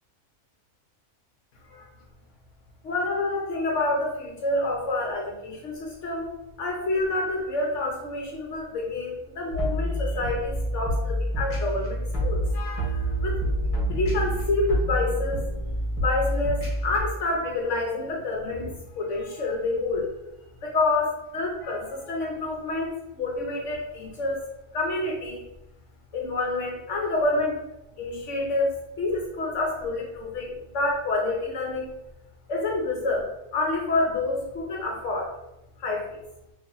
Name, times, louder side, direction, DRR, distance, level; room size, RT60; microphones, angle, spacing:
voice 1, 2.8-6.3 6.6-13.4 13.9-15.5 16.0-20.1 20.6-24.4 24.7-25.5 26.1-27.7 28.0-32.0 32.5-35.3 35.8-36.2, left 2 dB, 65° left, 0 dB, 0.9 m, -28 dB
sound 1, 9.5-17.0, equal, 30° left, 0.9 m, -27 dB
2.7 x 2.6 x 3.8 m, 0.93 s
omnidirectional pair, 1.4 m